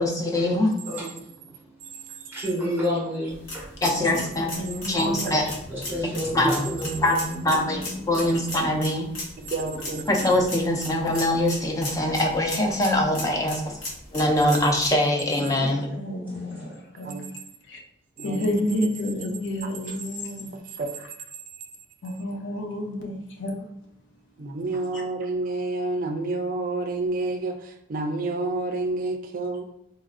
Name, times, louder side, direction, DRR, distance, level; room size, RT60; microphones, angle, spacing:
voice 1, 0.0-0.7 3.8-4.5 4.9-5.5 6.0-9.1 10.1-13.6 14.1-15.9, left 1 dB, 15° left, 0 dB, 0.5 m, -23 dB
voice 2, 0.8-3.8 5.2-6.9 15.4-15.5 16.3-16.7, left 1 dB, 10° right, -6 dB, 1.3 m, -32 dB
sound 1, 3.3-14.9, left 1 dB, 90° left, 1.2 m, -38 dB
voice 3, 4.6-5.2 15.6-16.7 17.0-17.3 17.7-17.8 18.2-20.5 22.0-23.6, left 1 dB, 60° left, 0 dB, 0.6 m, -31 dB
voice 4, 9.4-10.0 17.0-17.2 18.2-18.9 20.8-20.9 24.4-29.6, right 2 dB, 45° right, 5 dB, 0.4 m, -29 dB
4.0 x 2.6 x 2.4 m, 0.78 s
head